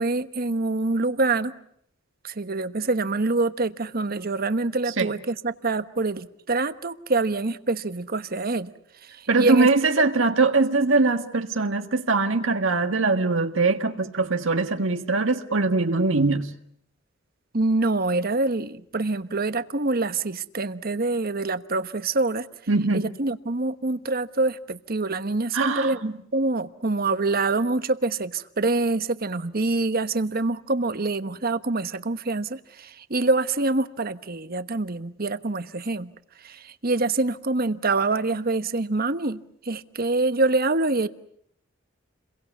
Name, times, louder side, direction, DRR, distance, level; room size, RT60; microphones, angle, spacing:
voice 1, 0.0-1.5 2.2-8.7 9.0-9.7 17.5-22.5 22.9-36.1 36.4-41.1, right 3 dB, 50° right, 12 dB, 1.2 m, -25 dB
voice 2, 9.3-16.5 22.7-23.1 25.5-26.0, right 3 dB, 75° right, 6 dB, 1.7 m, -22 dB
29.5 x 23.0 x 8.3 m, 0.67 s
head